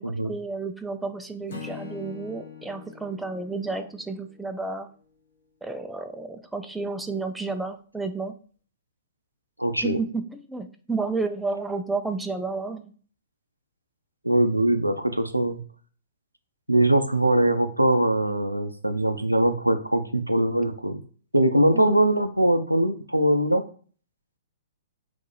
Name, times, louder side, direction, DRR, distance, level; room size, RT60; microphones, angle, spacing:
voice 1, 0.0-4.9 5.6-8.3 9.8-12.9 21.7-22.0, right 3 dB, 5° right, 7 dB, 0.4 m, -31 dB
Acoustic guitar / Strum, 1.5-4.8, left 7 dB, 55° left, 1.1 m, -43 dB
voice 2, 9.6-10.0 14.2-15.6 16.7-21.0 21.3-23.6, right 1 dB, 90° right, 7 dB, 0.5 m, -22 dB
3.6 x 2.8 x 4.0 m, 0.43 s
figure-of-eight pair, 115°, 0 cm